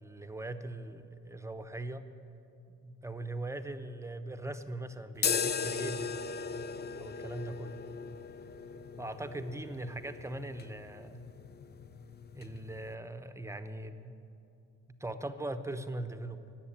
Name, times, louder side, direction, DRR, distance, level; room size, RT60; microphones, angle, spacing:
voice 1, 0.0-2.1 2.8-6.3 7.0-7.8 9.0-11.2 12.3-14.1 15.0-16.5, right 2 dB, 10° right, 9 dB, 0.9 m, -40 dB
sound 1, 5.2-12.9, left 6 dB, 35° left, 0.6 m, -38 dB
18.0 x 7.6 x 8.9 m, 2.7 s
cardioid pair, 90°, 30 cm